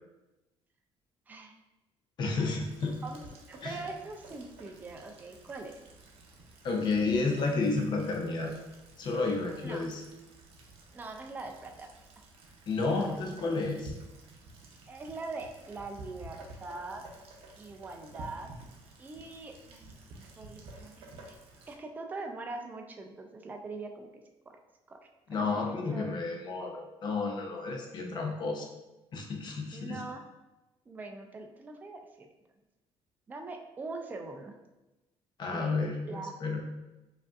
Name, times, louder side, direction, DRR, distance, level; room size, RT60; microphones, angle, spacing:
voice 1, 1.3-1.6 3.0-3.2 3.5-5.8 9.6-9.8 10.9-11.9 12.9-13.0 14.9-17.0 17.6-18.5 19.0-21.4 21.7-24.6 24.9-25.0 25.3-26.3 29.7-30.2 30.9-32.3 33.3-34.6 35.5-36.3, right 3 dB, 15° right, 4 dB, 0.3 m, -42 dB
voice 2, 2.2-3.0 3.6-3.8 6.6-8.5 9.0-10.0 12.7-13.9 25.3-28.7 29.1-30.0 35.4-36.6, left 3 dB, 45° left, 2 dB, 0.7 m, -31 dB
Rain, 2.6-21.8, right 2 dB, 70° right, 0.7 m, -51 dB
4.8 x 2.5 x 2.4 m, 1.0 s
cardioid pair, 145°, 10 cm